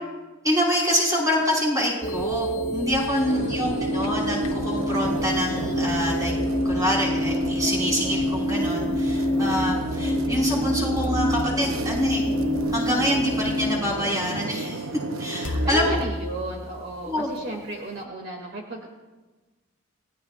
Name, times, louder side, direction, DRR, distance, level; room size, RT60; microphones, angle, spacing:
voice 1, 0.4-6.3 6.6-12.2 12.7-14.9 15.2-16.0 17.0-17.3, equal, 15° right, -3 dB, 5.4 m, -26 dB
sound 1, 2.0-13.8, left 1 dB, 30° left, 1.4 m, -27 dB
sound 2, 3.2-16.1, right 2 dB, 75° right, 0.9 m, -31 dB
voice 2, 3.3-3.7 15.6-18.9, right 1 dB, 50° right, 0 dB, 2.4 m, -34 dB
sound 3, 3.7-4.7 5.2-7.6 8.7-13.2 14.0-14.1 15.4-17.3, left 1 dB, 75° left, 1.2 m, -35 dB
29.5 x 19.0 x 2.5 m, 1.2 s
head